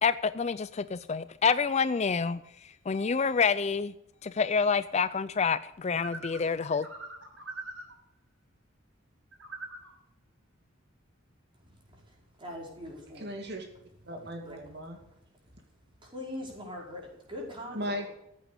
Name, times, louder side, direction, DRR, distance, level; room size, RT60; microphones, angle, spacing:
voice 1, 0.0-2.4 2.9-3.9 4.2-6.9, left 5 dB, 35° left, 15 dB, 0.4 m, -27 dB
sound 1, 6.0-7.9 9.3-9.9, right 3 dB, 85° right, 6.0 m, -42 dB
voice 2, 11.9-13.3 14.4-14.6 16.0-17.9, left 1 dB, 25° right, -2 dB, 5.2 m, -42 dB
voice 3, 13.1-13.6 14.1-15.0 17.7-18.1, equal, 55° right, 3 dB, 2.5 m, -36 dB
14.5 x 8.8 x 6.8 m, 0.82 s
head